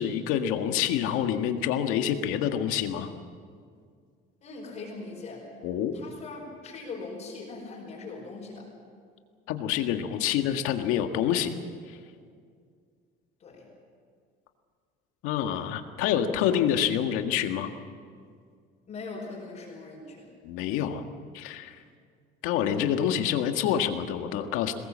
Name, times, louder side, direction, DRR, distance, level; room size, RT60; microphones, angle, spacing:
voice 1, 0.0-3.1 5.6-5.9 9.5-11.5 15.2-17.7 20.4-21.0 21.3-21.8 22.4-24.8, left 9 dB, 85° left, 6 dB, 1.8 m, -27 dB
voice 2, 4.4-5.5 5.9-8.7 13.4-13.7 18.8-20.3, left 3 dB, 35° left, -2 dB, 5.0 m, -41 dB
22.5 x 20.0 x 7.5 m, 2.1 s
cardioid pair, 175°, 21 cm